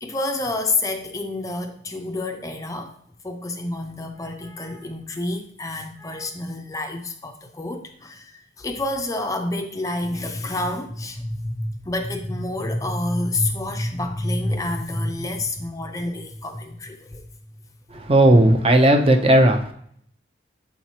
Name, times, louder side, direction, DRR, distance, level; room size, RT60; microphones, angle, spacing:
voice 1, 0.0-3.0 3.2-17.2 18.2-18.3, left 2 dB, 20° left, 5 dB, 0.4 m, -28 dB
voice 2, 18.1-19.7, right 1 dB, 30° right, 5 dB, 0.5 m, -15 dB
7.4 x 4.5 x 2.8 m, 0.65 s
head